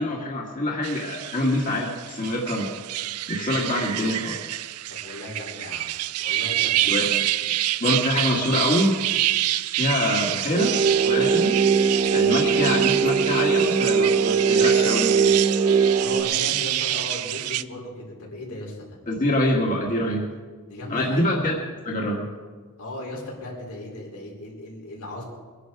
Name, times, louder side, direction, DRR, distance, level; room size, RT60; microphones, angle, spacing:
voice 1, 0.0-2.7 3.3-4.4 6.9-7.3 7.8-9.0 9.7-11.6 12.1-15.3 19.1-20.3 20.9-21.5 21.9-22.3, left 1 dB, 35° left, -2 dB, 1.9 m, -25 dB
sound 1, 0.8-17.6, right 14 dB, 80° right, 0.5 m, -27 dB
voice 2, 4.9-6.8 12.0-12.3 16.0-19.0 20.7-21.2 22.8-25.2, left 1 dB, 85° left, -3 dB, 4.8 m, -37 dB
sound 2, 10.5-16.2, right 5 dB, 55° right, 2.2 m, -20 dB
23.0 x 10.5 x 4.9 m, 1.4 s
head